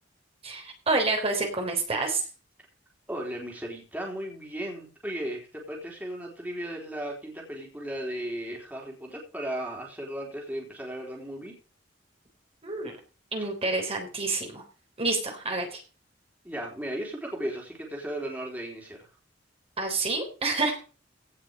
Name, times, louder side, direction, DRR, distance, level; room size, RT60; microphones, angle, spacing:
voice 1, 0.4-2.2 12.6-13.0 13.3-14.6 15.0-15.8 19.8-20.8, right 3 dB, 35° right, 2 dB, 3.6 m, -28 dB
voice 2, 3.1-11.5 16.4-19.0, right 1 dB, 10° right, -1 dB, 3.8 m, -36 dB
17.0 x 6.0 x 5.3 m, 0.36 s
head